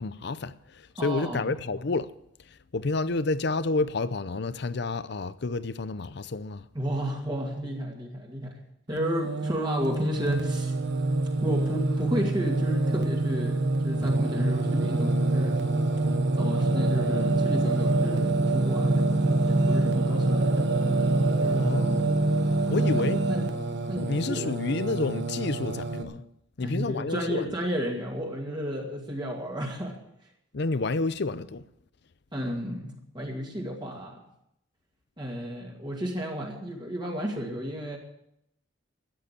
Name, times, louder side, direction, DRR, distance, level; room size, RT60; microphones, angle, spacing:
voice 1, 0.0-2.1 2.7-6.7 21.5-22.2 22.6-23.2 24.1-26.2 26.6-27.5 30.5-31.6, left 3 dB, 60° left, 0.6 m, -29 dB
voice 2, 1.0-1.5 6.7-8.5 8.9-10.7 11.4-15.6 16.4-20.4 21.4-21.8 22.9-23.4 23.9-24.5 26.6-30.0 32.3-34.2 35.2-38.0, equal, 25° right, 2.3 m, -32 dB
Singing, 8.9-26.0, right 2 dB, 60° right, 1.4 m, -25 dB
13.5 x 9.5 x 8.3 m
head